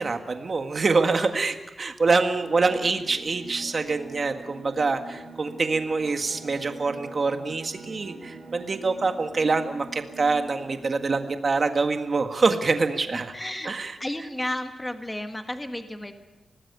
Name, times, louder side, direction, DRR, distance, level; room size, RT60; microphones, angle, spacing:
voice 1, 0.0-13.3 13.6-13.9, right 4 dB, 40° right, 6 dB, 1.7 m, -25 dB
sound 1, 2.3-11.4, right 3 dB, 65° right, 2.3 m, -43 dB
voice 2, 13.3-13.7 14.0-16.2, left 1 dB, 10° left, 6 dB, 1.6 m, -32 dB
25.0 x 18.5 x 6.8 m, 1.0 s
wide cardioid pair, 150°, 0 cm